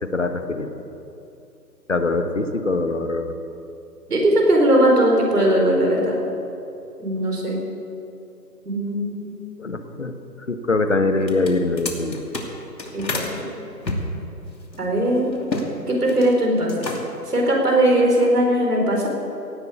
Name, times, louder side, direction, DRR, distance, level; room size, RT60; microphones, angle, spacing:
voice 1, 0.0-0.7 1.9-3.3 9.6-10.1 10.5-12.3, left 3 dB, 45° left, 8 dB, 1.1 m, -23 dB
voice 2, 4.1-6.2 7.0-7.6 8.6-9.4 12.9-13.2 14.8-15.3 15.9-16.9 17.3-19.1, right 1 dB, 65° right, 0 dB, 4.6 m, -19 dB
sound 1, 11.2-13.3 13.8-15.7 16.0-16.4 16.7-17.3, left 2 dB, 80° left, 2.8 m, -30 dB
17.5 x 9.0 x 8.2 m, 2.8 s
figure-of-eight pair, 170°, 50 cm